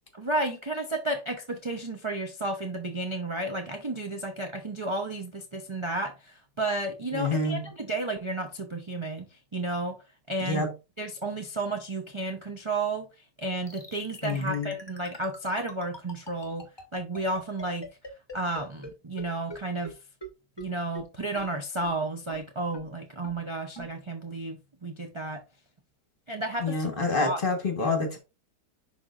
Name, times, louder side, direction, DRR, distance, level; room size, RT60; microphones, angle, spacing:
voice 1, 0.1-10.0 10.3-10.7 11.0-17.9 18.3-20.0 20.6-25.4 26.3-27.4 27.8-28.1, right 2 dB, 35° right, 0.4 m, -32 dB
voice 2, 7.1-7.6 10.5-10.7 14.2-14.7 26.6-28.2, left 3 dB, 35° left, 1.6 m, -27 dB
sound 1, 13.7-18.9 19.2-19.3 19.5-19.6 19.8-19.9 20.2-20.3 20.6-20.7 20.9-21.0 21.3-21.4 21.8-21.9 22.3-22.4 22.7-22.8 23.2-23.3 23.7-23.9, left 1 dB, 15° left, 1.3 m, -41 dB
11.0 x 3.7 x 2.5 m
omnidirectional pair, 1.8 m